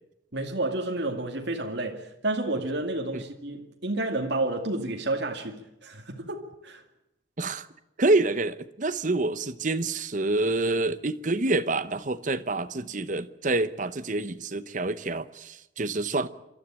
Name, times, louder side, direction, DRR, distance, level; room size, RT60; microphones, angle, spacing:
voice 1, 0.3-6.8, right 2 dB, 60° right, 2.2 m, -30 dB
voice 2, 8.0-16.3, right 2 dB, 40° right, 0.9 m, -27 dB
27.5 x 13.0 x 8.8 m
head